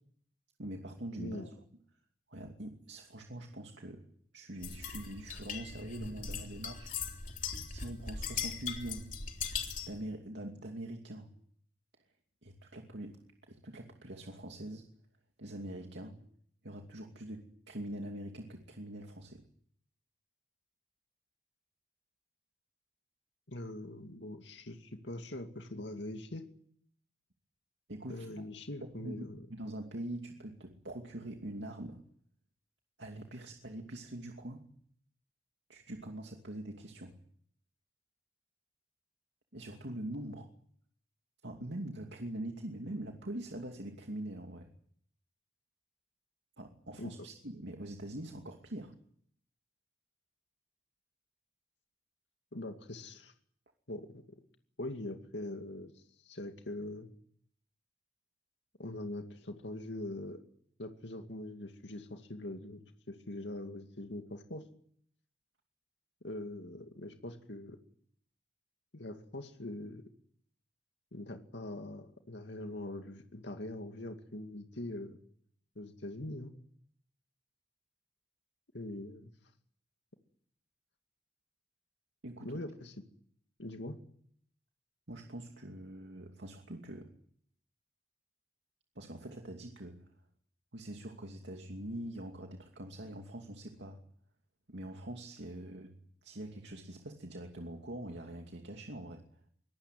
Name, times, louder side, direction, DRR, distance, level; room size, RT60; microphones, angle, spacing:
voice 1, 0.6-1.5 2.3-4.1 4.3-6.9 7.7-9.1 9.9-11.3 12.4-14.9 15.4-16.2 16.6-19.5 27.9-28.3 28.8-32.0 33.0-34.7 35.7-37.2 39.5-40.5 41.4-44.7 46.6-48.9 82.2-82.5 85.1-87.1 88.9-90.1 90.7-94.0 94.7-99.4, right 1 dB, 80° right, 2 dB, 2.7 m, -44 dB
voice 2, 1.2-1.5 23.5-26.4 28.1-29.5 47.0-47.1 52.5-53.3 53.9-54.4 54.8-57.1 58.8-60.4 60.8-62.8 63.1-64.6 66.2-67.8 68.9-70.0 71.1-75.2 75.8-76.5 78.7-79.3 82.4-82.9 83.6-84.0, left 1 dB, 80° left, 5 dB, 2.4 m, -42 dB
sound 1, 4.6-10.0, left 6 dB, 45° left, 3.4 m, -39 dB
24.0 x 19.0 x 9.3 m, 0.63 s
head